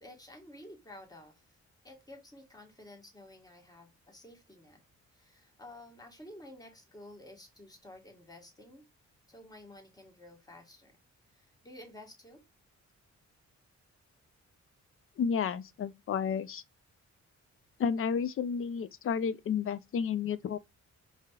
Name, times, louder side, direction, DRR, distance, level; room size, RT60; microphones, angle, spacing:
voice 1, 0.0-1.5 1.8-4.8 5.1-8.9 9.3-10.9 11.3-12.4, left 1 dB, 15° left, 1.1 m, -52 dB
voice 2, 15.2-16.6 17.8-20.6, left 6 dB, 50° left, 0.4 m, -31 dB
4.8 x 2.8 x 2.2 m
wide cardioid pair, 120°, 29 cm